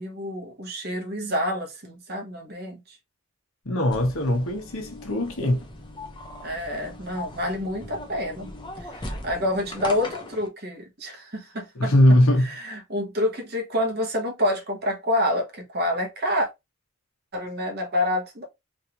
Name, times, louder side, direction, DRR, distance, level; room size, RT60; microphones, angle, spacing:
voice 1, 0.0-3.0 6.4-8.5 8.8-16.5 17.3-18.5, left 1 dB, 45° right, 1.1 m, -28 dB
voice 2, 3.6-5.7 11.8-12.5, left 1 dB, 65° left, 1.0 m, -20 dB
sound 1, 3.9-10.5, left 1 dB, 20° left, 0.6 m, -39 dB
3.2 x 2.7 x 2.8 m
head